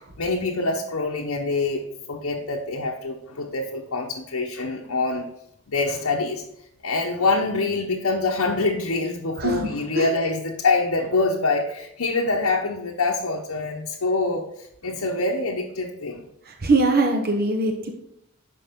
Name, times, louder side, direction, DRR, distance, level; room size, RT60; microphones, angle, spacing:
voice 1, 0.2-5.3 5.7-6.4 6.8-16.2, left 3 dB, 80° left, -1 dB, 1.0 m, -25 dB
voice 2, 9.4-10.1 16.5-17.9, right 2 dB, 45° right, 2 dB, 1.0 m, -22 dB
10.0 x 6.1 x 3.6 m, 0.77 s
head